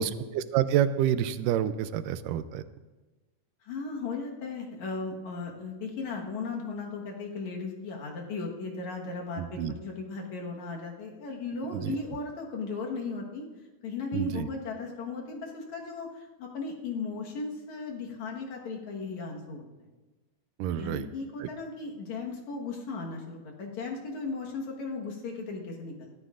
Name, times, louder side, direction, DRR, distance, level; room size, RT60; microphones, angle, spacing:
voice 1, 0.0-2.6 9.4-9.7 11.7-12.0 14.1-14.5 20.6-21.1, right 10 dB, 85° right, 12 dB, 2.2 m, -28 dB
voice 2, 3.6-13.5 13.8-19.9 20.8-26.1, left 4 dB, 65° left, 0 dB, 2.6 m, -36 dB
22.0 x 13.5 x 2.5 m, 1.2 s
omnidirectional pair, 3.8 m